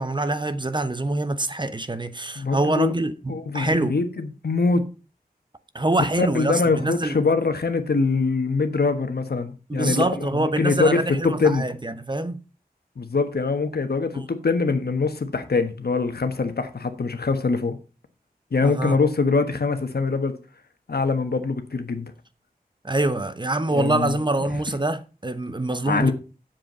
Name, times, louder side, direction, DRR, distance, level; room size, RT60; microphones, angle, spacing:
voice 1, 0.0-4.0 5.7-7.2 9.7-12.4 14.1-14.2 18.6-19.0 22.8-26.1, right 2 dB, 30° right, 0.9 m, -25 dB
voice 2, 2.3-2.9 3.3-4.8 6.2-11.6 13.0-17.8 18.5-20.3 20.9-22.1 23.7-24.2 25.9-26.1, left 4 dB, 85° left, 1.3 m, -23 dB
7.8 x 7.5 x 5.4 m
wide cardioid pair, 70°, 16 cm